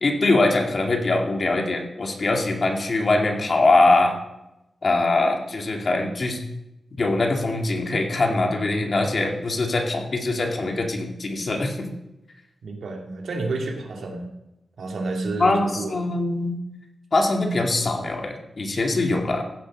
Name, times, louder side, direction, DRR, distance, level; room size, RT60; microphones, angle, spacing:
voice 1, 0.0-4.1 4.8-6.4 7.0-11.9 15.4-16.6 17.1-19.4, left 2 dB, 50° left, 2 dB, 2.2 m, -22 dB
voice 2, 12.6-14.3 14.8-16.0, right 3 dB, 80° right, 1 dB, 2.5 m, -30 dB
15.0 x 8.0 x 6.2 m, 0.94 s
wide cardioid pair, 105°, 0 cm